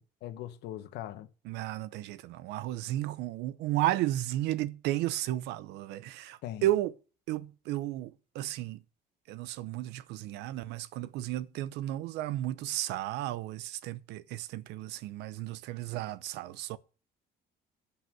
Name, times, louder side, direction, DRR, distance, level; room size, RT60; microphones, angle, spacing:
voice 1, 0.0-1.3 6.4-6.7, left 12 dB, 85° left, 1.3 m, -41 dB
voice 2, 1.5-6.9 7.3-8.8 9.3-16.8, right 14 dB, 90° right, 0.8 m, -33 dB
12.0 x 5.8 x 7.7 m
cardioid pair, 110°, 17 cm